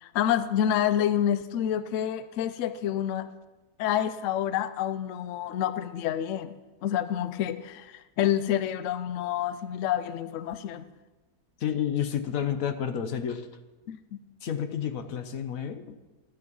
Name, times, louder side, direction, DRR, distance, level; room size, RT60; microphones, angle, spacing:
voice 1, 0.0-3.3 3.8-6.5 6.8-10.8 13.9-14.0, left 10 dB, 90° left, 13 dB, 0.6 m, -28 dB
voice 2, 11.6-13.5 14.4-16.0, left 9 dB, 60° left, 9 dB, 1.1 m, -30 dB
12.5 x 7.9 x 5.4 m, 1.2 s
omnidirectional pair, 1.9 m